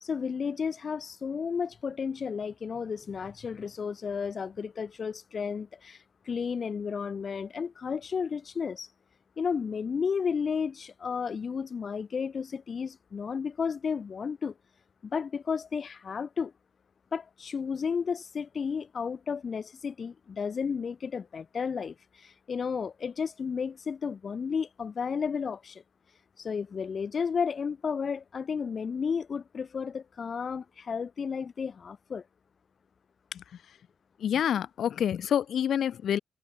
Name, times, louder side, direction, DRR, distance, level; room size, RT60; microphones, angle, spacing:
voice 1, 0.0-8.9 9.4-14.5 15.0-16.5 17.1-25.8 26.4-32.2, left 6 dB, 40° left, 1.4 m, -32 dB
voice 2, 34.2-36.2, left 9 dB, 70° left, 5.3 m, -27 dB
wide cardioid pair, 175°, 0 cm